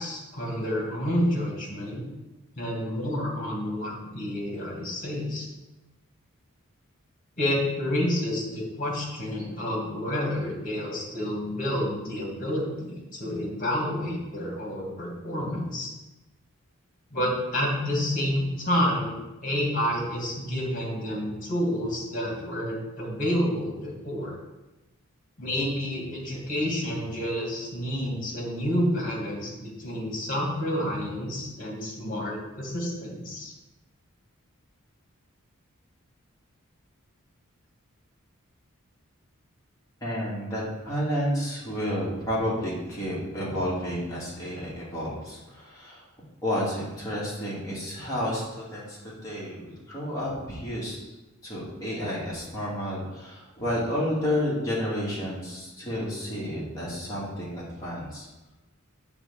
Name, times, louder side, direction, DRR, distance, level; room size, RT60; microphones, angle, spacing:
voice 1, 0.0-2.0 2.5-5.5 7.4-15.9 17.1-24.4 25.4-33.5, equal, 40° left, -2 dB, 2.6 m, -29 dB
voice 2, 40.0-46.0 46.4-51.0 51.4-58.3, equal, 15° left, -7 dB, 2.7 m, -31 dB
8.8 x 3.8 x 6.9 m, 1.0 s
head